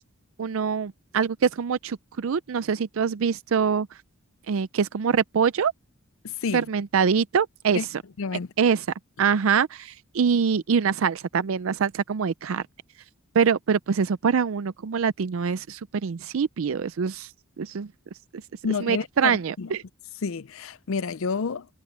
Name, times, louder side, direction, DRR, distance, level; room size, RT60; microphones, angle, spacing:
voice 1, 0.4-3.9 4.5-5.7 6.5-8.0 8.6-8.9 9.2-12.6 13.3-17.3 17.6-17.9 18.8-19.8, right 6 dB, 65° right, 0.4 m, -24 dB
voice 2, 6.2-6.6 7.8-7.9 8.2-8.5 18.6-19.7 20.2-21.7, left 4 dB, 65° left, 0.5 m, -29 dB
head